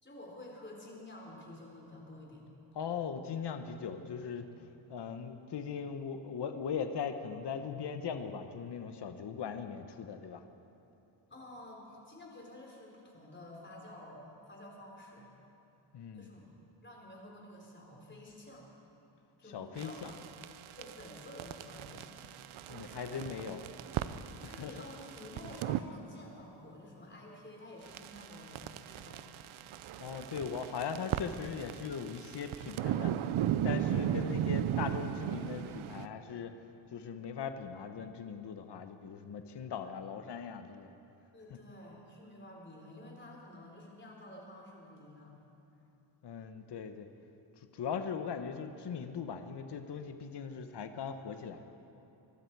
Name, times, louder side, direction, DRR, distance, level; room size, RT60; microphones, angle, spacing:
voice 1, 0.0-2.4 11.3-15.3 16.1-16.4 16.8-18.7 19.4-20.1 20.8-22.2 23.1-23.3 24.5-29.2 41.3-45.4, left 1 dB, 25° left, -2 dB, 3.9 m, -50 dB
voice 2, 2.7-4.5 4.9-10.4 15.9-16.3 19.5-20.1 22.7-23.6 24.4-24.7 30.0-33.1 33.6-36.6 36.9-40.9 46.2-47.1 47.7-51.6, left 6 dB, 60° left, 8 dB, 1.0 m, -39 dB
sound 1, 19.8-25.8 27.9-36.1, right 11 dB, 85° right, 0.6 m, -37 dB
23.5 x 12.0 x 4.6 m, 2.9 s
cardioid pair, 85°, 47 cm